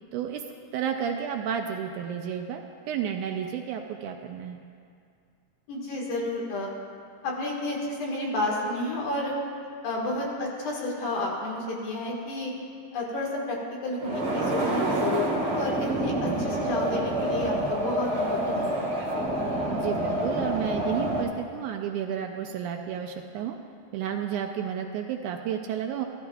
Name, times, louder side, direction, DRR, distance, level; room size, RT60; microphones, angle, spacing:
voice 1, 0.1-0.4 0.7-2.6 2.9-4.6 19.7-23.6 23.9-26.1, right 8 dB, 80° right, 4 dB, 1.9 m, -31 dB
voice 2, 5.7-6.7 7.2-9.3 9.8-12.5 12.9-18.9, left 2 dB, 90° left, -2 dB, 3.5 m, -31 dB
sound 1, 14.0-21.2, right 1 dB, 50° right, 0.7 m, -27 dB
15.5 x 13.5 x 2.4 m, 2.3 s
omnidirectional pair, 3.8 m